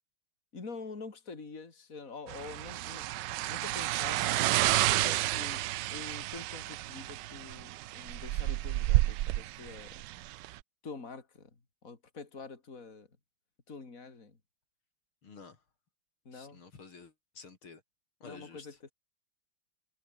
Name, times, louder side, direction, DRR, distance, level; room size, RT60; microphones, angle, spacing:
voice 1, 0.5-3.1 3.4-4.5 4.9-9.9 10.8-11.5 11.8-13.1 13.7-14.4 16.3-16.6 18.2-18.8, left 4 dB, 35° left, 3.7 m, -46 dB
sound 1, 2.3-10.6, right 16 dB, 75° right, 1.0 m, -31 dB
voice 2, 15.2-15.6 16.3-17.8 18.2-18.7, left 5 dB, 70° left, 4.0 m, -51 dB
omnidirectional pair, 2.4 m